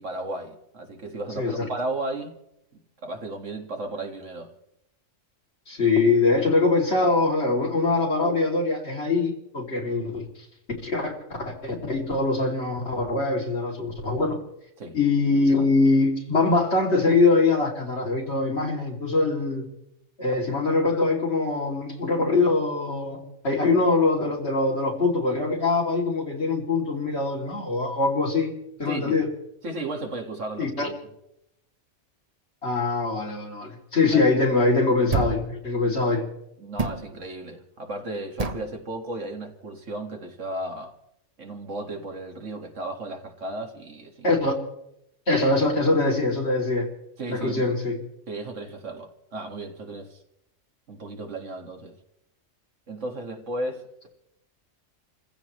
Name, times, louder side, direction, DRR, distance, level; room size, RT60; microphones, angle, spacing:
voice 1, 0.0-2.4 2.7-4.5 14.8-15.0 28.9-29.3 29.6-30.9 34.0-34.3 36.6-40.9 41.4-44.4 47.2-47.6 48.3-50.2 50.9-52.0 52.9-54.1, right 2 dB, 70° right, 2.1 m, -34 dB
voice 2, 1.4-1.7 5.7-10.3 10.8-11.2 11.5-14.4 14.9-19.7 20.2-28.5 28.8-29.3 30.6-30.9 32.6-36.3 44.2-44.5 45.3-46.9 47.3-48.0, left 3 dB, 55° left, 3.0 m, -23 dB
sound 1, 35.1-35.5 36.8-37.1 38.4-38.7, right 4 dB, 35° right, 0.9 m, -27 dB
29.5 x 15.5 x 3.1 m
omnidirectional pair, 1.3 m